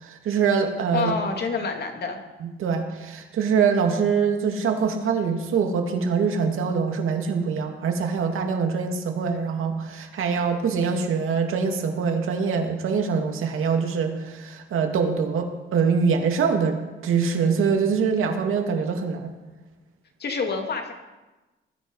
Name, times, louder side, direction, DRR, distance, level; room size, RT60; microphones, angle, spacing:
voice 1, 0.0-1.1 2.4-19.3, right 6 dB, 85° right, 3 dB, 2.4 m, -24 dB
voice 2, 0.9-2.2 20.2-20.9, left 4 dB, 50° left, 3 dB, 2.5 m, -27 dB
20.0 x 13.0 x 5.5 m, 1.1 s
wide cardioid pair, 140°, 21 cm